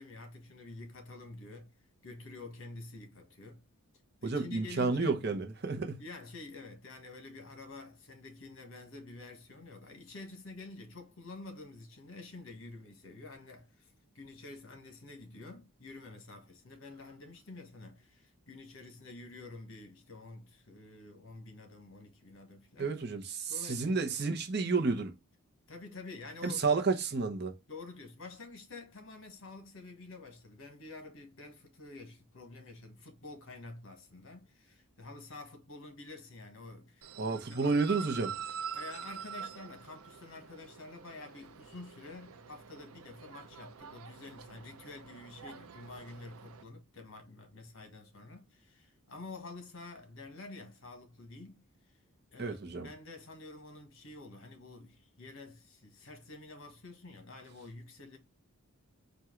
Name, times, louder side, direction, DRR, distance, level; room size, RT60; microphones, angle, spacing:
voice 1, 0.0-1.7 2.0-3.6 4.2-5.2 6.0-23.0 23.5-24.1 25.7-26.6 27.7-38.0 38.7-51.6 52.3-58.2, left 2 dB, 65° left, 1.3 m, -49 dB
voice 2, 4.2-6.0 22.8-25.1 26.4-27.6 37.2-38.3 52.4-52.9, right 4 dB, 50° right, 0.8 m, -31 dB
sound 1, 37.0-46.6, right 7 dB, 80° right, 0.5 m, -46 dB
4.4 x 2.5 x 3.6 m
head